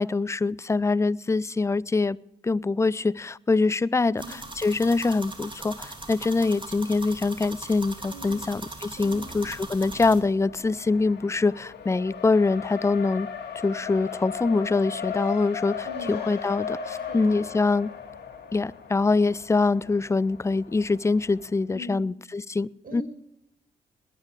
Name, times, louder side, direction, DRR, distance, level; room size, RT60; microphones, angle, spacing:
voice 1, 0.0-2.2 2.4-13.3 13.6-17.9 18.5-23.0, left 3 dB, 15° left, 22 dB, 0.4 m, -24 dB
voice 2, 4.0-4.3 8.1-8.4 9.0-9.2 15.9-16.1 16.9-17.4 21.7-22.0 22.8-23.0, equal, 50° right, 6 dB, 5.3 m, -41 dB
sound 1, 4.2-10.2, right 2 dB, 25° right, 2.9 m, -40 dB
Race car auto racing, 9.0-21.6, left 7 dB, 60° left, 2.3 m, -37 dB
20.0 x 9.8 x 4.9 m, 0.81 s
supercardioid pair, 50°, 19 cm